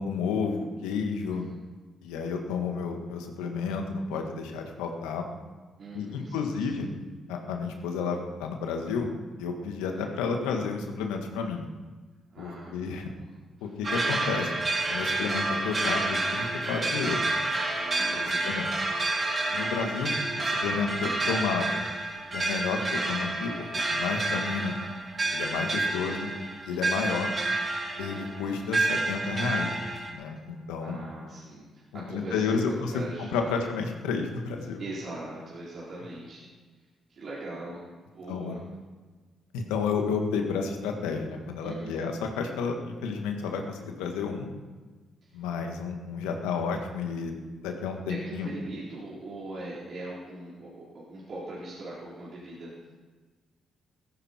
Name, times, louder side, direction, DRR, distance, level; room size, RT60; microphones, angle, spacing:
voice 1, 0.0-1.5 2.0-5.3 5.9-6.9 7.3-9.1 9.4-11.6 12.4-13.1 13.6-14.5 14.9-17.2 18.1-18.7 19.5-21.8 22.3-24.7 25.3-26.3 26.6-27.3 28.0-29.7 30.1-31.0 31.9-34.8 38.3-38.6 39.5-44.5 45.3-47.4 47.6-48.5, left 5 dB, 90° left, 3 dB, 1.7 m, -31 dB
voice 2, 5.8-6.6 9.9-10.0 12.3-13.7 18.0-18.5 25.8-26.2 27.0-27.3 30.5-33.6 34.8-36.5 37.1-37.8 38.1-38.6 41.6-41.9 45.2-45.4 48.1-52.7, right 2 dB, 60° right, -7 dB, 4.0 m, -41 dB
sound 1, 13.8-30.1, right 2 dB, 40° right, 4.6 m, -29 dB
15.5 x 15.0 x 4.4 m, 1.4 s
supercardioid pair, 55°, 0 cm